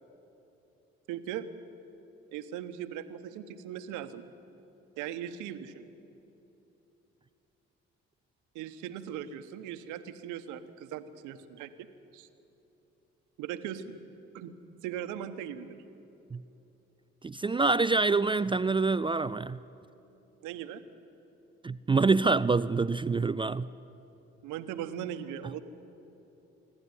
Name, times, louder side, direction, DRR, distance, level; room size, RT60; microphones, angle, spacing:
voice 1, 1.1-1.5 2.3-4.2 5.0-5.9 8.5-11.9 12.1-12.3 13.4-14.0 14.3-14.5 14.8-15.8 20.4-20.8 24.4-25.6, right 10 dB, 75° right, 10 dB, 1.1 m, -39 dB
voice 2, 17.2-19.6 21.6-23.7, right 4 dB, 15° right, 16 dB, 0.4 m, -26 dB
25.5 x 12.0 x 9.7 m, 2.9 s
hypercardioid pair, 60°, 30 cm